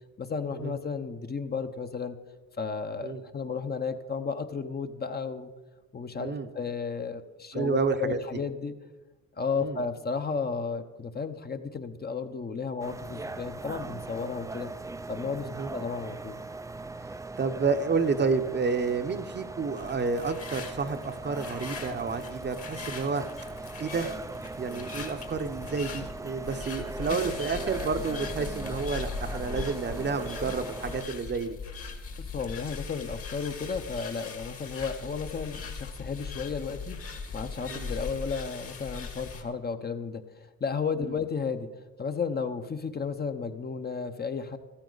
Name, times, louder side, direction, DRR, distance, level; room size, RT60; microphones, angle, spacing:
voice 1, 0.2-2.1 2.6-5.5 5.9-8.7 9.4-14.7 15.1-16.4 32.2-41.7 42.0-44.6, left 5 dB, 30° left, 8 dB, 0.8 m, -33 dB
voice 2, 7.5-8.2 9.5-9.8 15.4-15.7 17.4-23.2 23.8-24.2 24.6-31.6 37.7-37.9 41.0-41.1, right 4 dB, 35° right, 8 dB, 0.8 m, -30 dB
sound 1, 12.8-31.0, right 3 dB, 10° right, 0.4 m, -40 dB
sound 2, 19.8-39.4, left 4 dB, 50° left, 1.8 m, -40 dB
14.5 x 13.0 x 4.0 m, 1.2 s
cardioid pair, 90°, 30 cm